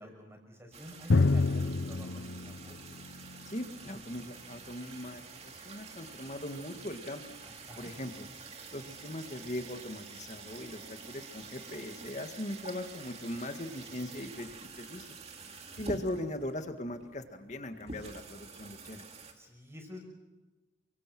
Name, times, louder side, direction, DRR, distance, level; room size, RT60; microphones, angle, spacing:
voice 1, 0.0-2.7 7.4-7.9 19.3-20.0, equal, 15° right, 2 dB, 5.9 m, -49 dB
sound 1, 0.7-19.3, right 3 dB, 35° right, 2.6 m, -48 dB
Drum, 1.1-4.6, left 3 dB, 80° left, 0.7 m, -29 dB
voice 2, 3.5-7.2 7.8-8.3 8.7-15.1 15.8-19.1, left 1 dB, 40° left, 7 dB, 2.0 m, -40 dB
29.0 x 24.5 x 6.2 m, 1.1 s
head